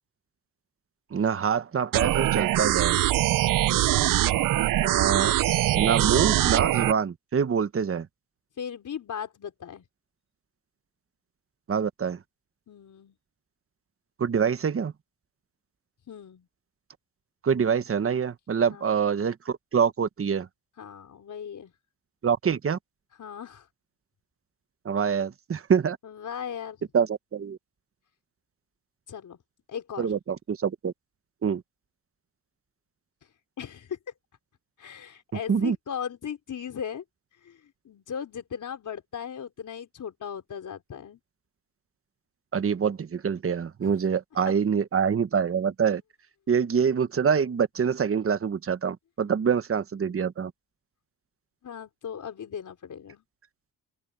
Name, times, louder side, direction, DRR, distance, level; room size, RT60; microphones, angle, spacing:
voice 1, 1.1-3.0 4.8-5.3 5.7-8.1 11.7-12.2 14.2-14.9 17.4-20.5 22.2-22.8 24.8-26.0 26.9-27.1 27.3-27.6 30.0-30.9 31.4-31.6 35.5-35.7 42.5-46.0 46.5-50.5, right 7 dB, 45° right, 1.2 m, -25 dB
sound 1, 1.9-6.9, right 14 dB, 80° right, 0.6 m, -23 dB
voice 2, 3.3-4.0 8.6-9.8 12.7-13.2 16.1-16.5 18.7-19.0 20.8-21.7 23.2-23.7 26.0-26.8 29.1-29.4 29.7-30.1 33.6-34.0 34.8-37.0 37.4-41.2 43.8-43.9 50.0-50.1 51.6-53.2, left 8 dB, 65° left, 4.3 m, -38 dB
open air
cardioid pair, 65°, 33 cm